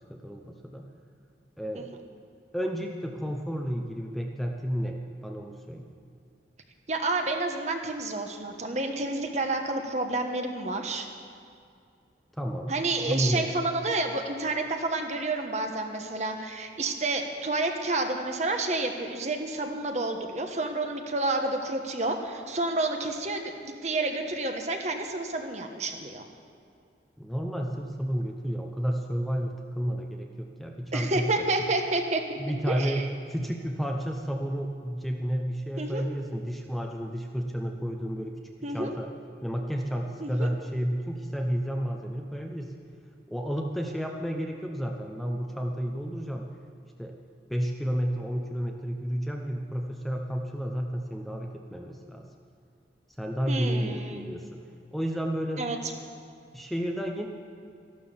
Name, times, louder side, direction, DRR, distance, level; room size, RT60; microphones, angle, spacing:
voice 1, 0.1-0.8 1.6-1.9 2.5-5.9 12.4-12.7 13.0-13.6 27.2-31.5 32.4-33.0 33.3-38.4 38.7-39.1 39.4-42.7 43.3-46.5 47.0-47.1 47.5-52.3 53.2-54.6 54.9-55.6 56.5-57.3, equal, ahead, 1 dB, 0.8 m, -31 dB
voice 2, 6.9-11.1 12.7-26.2 30.9-32.4 32.7-33.1 35.8-36.0 38.6-38.9 40.2-40.5 53.5-54.2 55.6-55.8, right 2 dB, 40° right, 4 dB, 1.2 m, -29 dB
14.0 x 12.0 x 7.1 m, 2.4 s
head